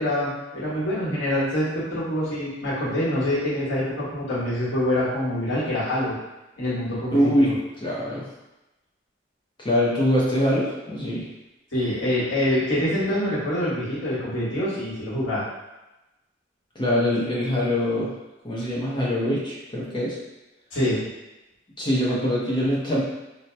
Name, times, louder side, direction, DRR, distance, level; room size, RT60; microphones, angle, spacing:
voice 1, 0.0-6.1 6.6-7.5 11.7-15.4 20.7-21.0, left 1 dB, 85° left, -8 dB, 1.2 m, -25 dB
voice 2, 7.1-7.5 7.8-8.3 9.6-11.3 16.8-18.1 18.4-20.2 21.8-23.0, equal, 25° left, -6 dB, 0.6 m, -23 dB
2.7 x 2.1 x 3.2 m, 1.0 s
head